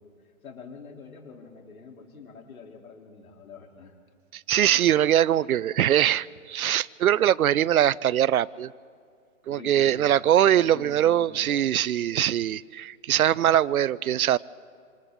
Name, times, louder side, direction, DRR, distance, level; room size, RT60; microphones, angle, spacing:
voice 1, 0.4-3.9 9.5-11.6, left 5 dB, 75° left, 1 dB, 3.5 m, -45 dB
voice 2, 4.3-8.7 9.5-14.4, right 11 dB, 75° right, 21 dB, 0.6 m, -22 dB
27.0 x 27.0 x 3.7 m, 2.2 s
hypercardioid pair, 170°, 43 cm